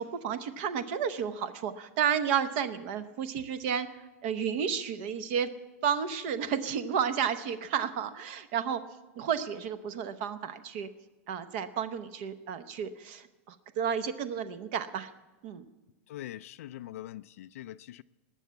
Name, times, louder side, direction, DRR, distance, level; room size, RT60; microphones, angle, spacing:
voice 1, 0.0-3.9 4.2-5.5 5.8-8.8 9.2-10.9 11.3-15.1 15.4-15.7, right 7 dB, 45° right, 0.8 m, -32 dB
voice 2, 16.1-18.0, left 13 dB, 75° left, 0.4 m, -43 dB
19.5 x 7.0 x 8.3 m
supercardioid pair, 160°, 8 cm